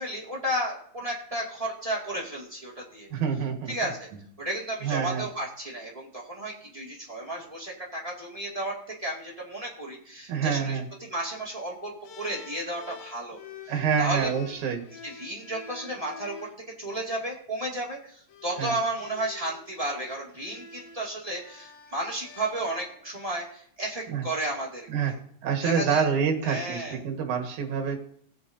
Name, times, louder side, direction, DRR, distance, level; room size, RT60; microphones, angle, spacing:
voice 1, 0.0-3.1 3.7-4.1 4.4-14.6 15.0-16.5 16.8-24.9 25.6-26.1 26.4-27.0, right 1 dB, 15° right, -3 dB, 1.6 m, -33 dB
voice 2, 3.1-3.7 4.1-4.2 4.8-5.2 10.3-10.9 13.7-14.8 18.6-18.7 24.1-24.2 24.9-25.1 25.4-28.1, right 7 dB, 65° right, 3 dB, 2.8 m, -27 dB
sound 1, 12.0-16.6 17.6-17.8 18.3-23.1, left 6 dB, 65° left, 2.3 m, -47 dB
17.0 x 8.8 x 2.7 m, 0.64 s
omnidirectional pair, 3.8 m